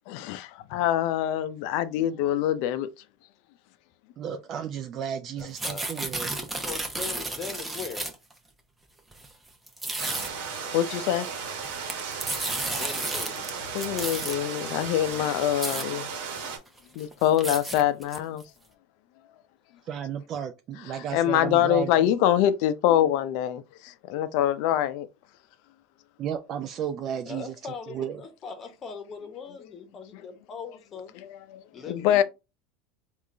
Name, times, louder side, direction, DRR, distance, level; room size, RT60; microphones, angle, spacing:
voice 1, 0.1-2.9 10.7-11.3 13.7-16.1 16.9-18.4 21.1-25.1 31.2-32.2, left 11 dB, 65° left, 0.4 m, -25 dB
voice 2, 4.2-6.3 19.8-22.1 26.2-27.5 27.9-28.2, right 8 dB, 45° right, 0.4 m, -33 dB
voice 3, 5.4-5.8 6.6-8.1 12.7-13.7 27.3-31.2 31.7-32.2, left 5 dB, 35° left, 0.9 m, -40 dB
sound 1, 5.4-8.3 9.1-9.3 9.7-10.3 11.5-13.5 13.8-14.4 15.1-15.2 15.4-15.8 16.4-16.5 16.8-18.4, right 2 dB, 15° right, 0.8 m, -32 dB
sound 2, 10.0-16.6, right 6 dB, 75° right, 1.0 m, -35 dB
3.6 x 2.4 x 3.2 m
supercardioid pair, 105°, 0 cm